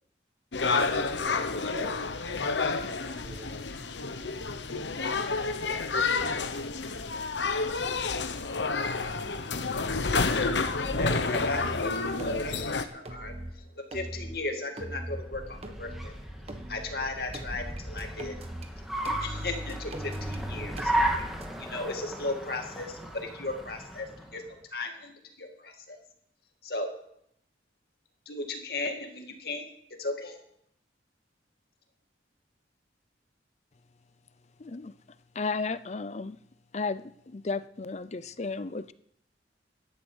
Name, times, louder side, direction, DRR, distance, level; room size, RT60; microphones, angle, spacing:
sound 1, 0.5-12.8, left 4 dB, 90° left, 1.1 m, -29 dB
voice 1, 0.6-1.9 2.2-2.4 3.1-3.5 4.0-4.1, right 2 dB, 55° right, -8 dB, 7.2 m, -46 dB
sound 2, 10.6-11.0 11.3-11.8 12.2-12.7 13.1-13.5 13.9-14.4 14.8-15.2 15.6-16.1 16.5-17.0 17.3-18.7 19.0-21.5, right 1 dB, 35° right, 1.6 m, -39 dB
voice 2, 10.8-16.2 16.7-18.4 19.2-20.9 21.6-26.0 26.6-26.9 28.3-29.6 30.0-30.4, left 2 dB, 60° left, 4 dB, 2.4 m, -36 dB
Car, 15.0-24.5, right 1 dB, ahead, 2.1 m, -35 dB
voice 3, 34.6-34.9 35.4-36.4 36.7-38.9, left 4 dB, 40° left, 15 dB, 0.5 m, -33 dB
16.5 x 11.5 x 6.4 m, 0.72 s
head